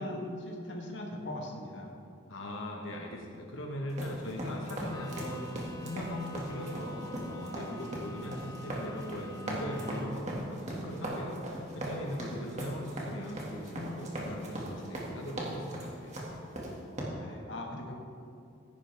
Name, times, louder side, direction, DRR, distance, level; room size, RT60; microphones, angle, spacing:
voice 1, 0.0-1.9 17.2-17.9, left 1 dB, 65° left, 0 dB, 1.6 m, -39 dB
voice 2, 2.3-16.1, left 1 dB, 85° left, 0 dB, 1.4 m, -39 dB
sound 1, 3.9-17.0, right 1 dB, 35° right, 2.1 m, -39 dB
Bowed string instrument, 4.8-10.4, left 2 dB, 20° left, 0.7 m, -48 dB
16.0 x 10.5 x 3.5 m, 2.5 s
head